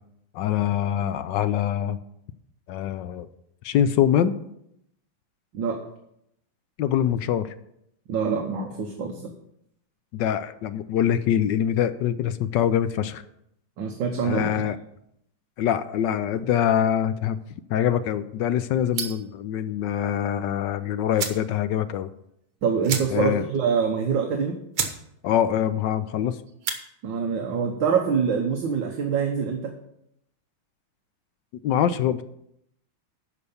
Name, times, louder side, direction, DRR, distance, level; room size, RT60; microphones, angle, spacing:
voice 1, 0.3-2.0 2.7-3.3 3.6-4.4 6.8-7.5 10.1-13.2 14.2-14.8 15.6-17.4 17.7-22.1 23.1-23.4 25.2-26.4 31.6-32.2, left 10 dB, 70° left, 12 dB, 1.1 m, -24 dB
voice 2, 8.1-9.3 13.8-14.7 22.6-24.6 27.0-29.7, right 6 dB, 65° right, 3 dB, 1.7 m, -25 dB
sound 1, 18.9-19.3 20.7-20.8 21.1-21.5 21.9-22.0 22.2-22.3 22.8-23.4 23.8-23.9 24.4-24.5 24.7-25.0 25.3-25.7 26.5-26.8, right 7 dB, 80° right, 2.1 m, -30 dB
12.5 x 5.1 x 7.0 m, 0.76 s
omnidirectional pair, 2.3 m